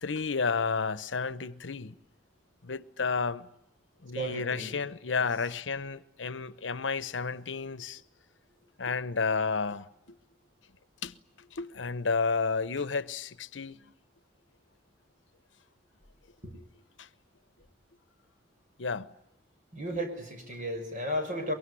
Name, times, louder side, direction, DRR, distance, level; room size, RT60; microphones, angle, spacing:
voice 1, 0.0-1.9 2.6-3.5 4.0-8.0 8.8-10.2 11.0-11.1 11.5-13.8 17.0-17.1 18.8-19.1, left 4 dB, 85° left, 0.9 m, -31 dB
voice 2, 4.1-4.8 5.1-5.2 16.4-16.5 19.7-21.5, equal, 45° right, 6.3 m, -34 dB
23.5 x 23.0 x 9.8 m
head